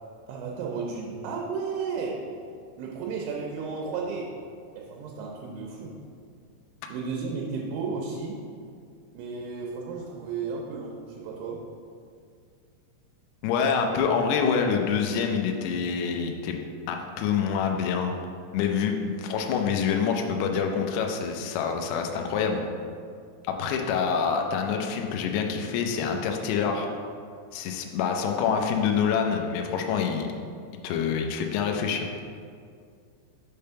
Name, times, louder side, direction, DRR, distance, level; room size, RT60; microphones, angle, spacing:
voice 1, 0.3-2.2 2.8-4.3 4.8-6.0 6.9-8.4 9.1-11.6, right 5 dB, 90° right, -1 dB, 3.0 m, -33 dB
voice 2, 13.4-16.6 16.9-18.1 18.5-22.6 23.5-26.9 27.5-30.3 30.8-32.1, left 6 dB, 90° left, 3 dB, 2.2 m, -26 dB
6.7 x 3.4 x 5.5 m, 2.2 s
omnidirectional pair, 5.2 m